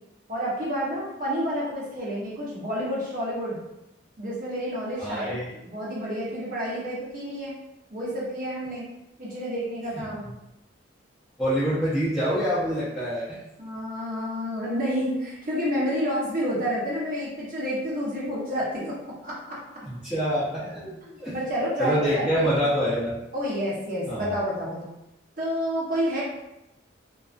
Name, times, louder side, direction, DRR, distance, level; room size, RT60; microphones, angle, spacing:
voice 1, 0.3-3.6 4.2-7.6 7.9-8.9 9.2-10.3 13.6-19.6 20.7-22.5 23.3-24.9 25.4-26.2, equal, 45° right, -6 dB, 0.7 m, -29 dB
voice 2, 5.0-5.5 10.0-10.1 11.4-13.2 19.8-20.9 21.2-21.4 21.8-23.2 24.1-24.2, equal, 5° right, -12 dB, 0.5 m, -26 dB
2.3 x 2.3 x 2.4 m, 0.91 s
head